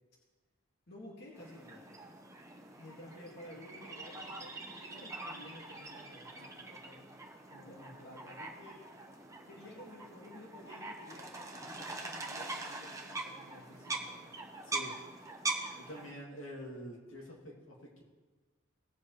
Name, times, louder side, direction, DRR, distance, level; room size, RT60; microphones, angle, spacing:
voice 1, 0.9-1.9 2.8-7.1 7.5-8.8 9.4-14.4, left 1 dB, 55° left, -5 dB, 2.2 m, -53 dB
sound 1, 1.3-16.1, right 2 dB, 15° right, 1.0 m, -43 dB
voice 2, 15.8-18.0, equal, 75° left, -3 dB, 2.7 m, -47 dB
18.5 x 7.4 x 3.3 m, 1.3 s
head